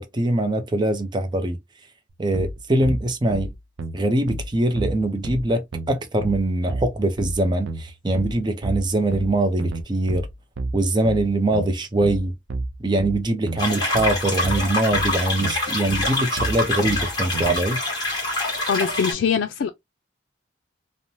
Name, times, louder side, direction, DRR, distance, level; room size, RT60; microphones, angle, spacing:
voice 1, 0.0-1.6 2.2-3.5 3.9-5.6 5.9-10.3 10.7-12.3 12.8-17.8, right 1 dB, 25° right, 0.5 m, -23 dB
sound 1, 2.3-17.6, right 1 dB, 75° right, 0.5 m, -31 dB
sound 2, 13.6-19.1, left 2 dB, 20° left, 1.3 m, -25 dB
voice 2, 18.4-19.7, left 7 dB, 90° left, 0.3 m, -23 dB
3.0 x 2.1 x 2.6 m
head